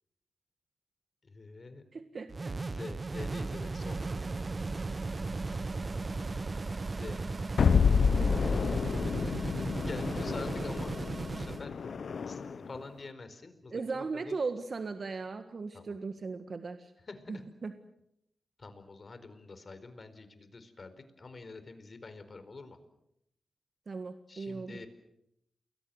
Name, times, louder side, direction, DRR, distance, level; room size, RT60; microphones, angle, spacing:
voice 1, 1.2-1.8 2.6-4.0 6.9-7.2 9.0-11.7 12.2-14.4 15.7-15.9 17.0-17.4 18.6-22.8 24.3-24.9, left 3 dB, 45° left, 11 dB, 4.5 m, -46 dB
voice 2, 1.9-2.5 8.2-8.5 13.7-16.9 17.3-17.7 23.9-24.8, right 4 dB, 55° right, 8 dB, 1.7 m, -38 dB
sound 1, 2.3-11.7, right 3 dB, 40° right, 1.0 m, -36 dB
sound 2, 7.6-12.7, left 6 dB, 70° left, 0.9 m, -29 dB
29.5 x 21.5 x 7.8 m, 0.80 s
cardioid pair, 65°, 0 cm